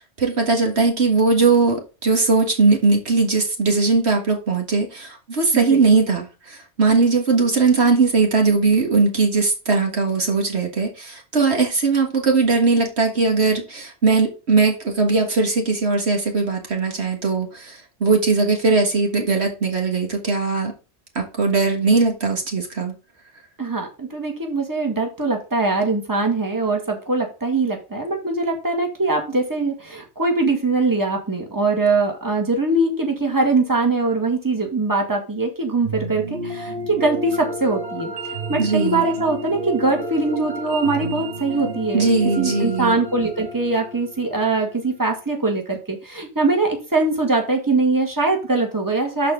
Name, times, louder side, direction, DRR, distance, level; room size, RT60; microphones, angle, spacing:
voice 1, 0.0-20.7 21.2-22.9 38.6-39.1 41.9-42.9, right 4 dB, 65° right, 1.9 m, -19 dB
voice 2, 23.6-38.1 38.5-42.1 42.4-49.3, right 3 dB, 15° right, 2.0 m, -22 dB
sound 1, 35.8-45.0, right 1 dB, 50° right, 2.0 m, -31 dB
13.0 x 4.3 x 3.7 m
omnidirectional pair, 1.2 m